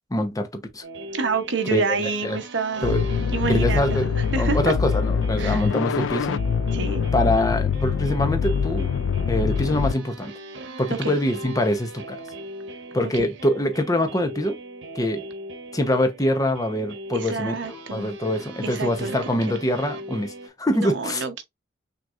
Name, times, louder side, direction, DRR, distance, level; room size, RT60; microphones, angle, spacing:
voice 1, 0.1-0.8 1.7-2.0 2.2-2.4 2.8-3.0 3.5-4.1 4.4-6.4 7.1-8.9 9.3-10.3 10.8-12.2 12.9-14.6 14.9-15.2 15.7-17.5 17.9-20.3 20.6-21.2, left 1 dB, 20° left, 0.9 m, -24 dB
sound 1, 0.8-20.5, right 1 dB, 90° right, 1.1 m, -39 dB
voice 2, 1.1-3.0 3.3-4.0 4.3-4.7 5.4-5.7 6.7-7.0 10.9-11.1 13.1-13.3 17.1-18.2 18.6-19.4 20.7-21.4, right 4 dB, 70° right, 0.9 m, -28 dB
sound 2, 2.8-9.9, left 6 dB, 75° left, 0.3 m, -24 dB
6.1 x 3.1 x 2.5 m
head